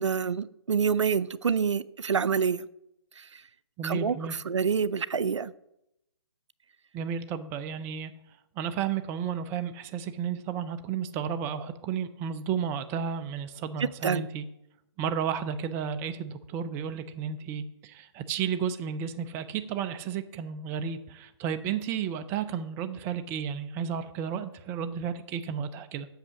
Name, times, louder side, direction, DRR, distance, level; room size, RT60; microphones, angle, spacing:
voice 1, 0.0-2.7 3.2-3.4 3.8-5.5 13.8-14.2, right 6 dB, 85° right, 18 dB, 0.4 m, -27 dB
voice 2, 3.8-4.4 6.9-8.1 8.6-14.4 15.0-26.1, right 7 dB, 15° right, 11 dB, 0.5 m, -32 dB
8.1 x 6.7 x 6.2 m, 0.83 s
hypercardioid pair, 145°, 15 cm